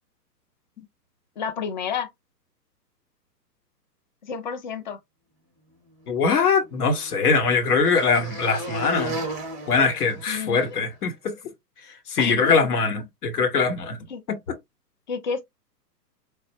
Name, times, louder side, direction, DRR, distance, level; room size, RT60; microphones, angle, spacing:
voice 1, 1.4-2.1 4.2-5.0 10.3-10.8 12.2-12.6 14.1-14.2 15.1-15.4, left 6 dB, 30° left, 0.4 m, -30 dB
voice 2, 6.1-9.2 9.7-11.4 12.1-14.0 14.3-14.4, left 4 dB, 65° left, 1.0 m, -22 dB
sound 1, 6.4-10.9, right 1 dB, 10° right, 0.6 m, -35 dB
3.4 x 2.1 x 2.6 m
figure-of-eight pair, 120°, 50 cm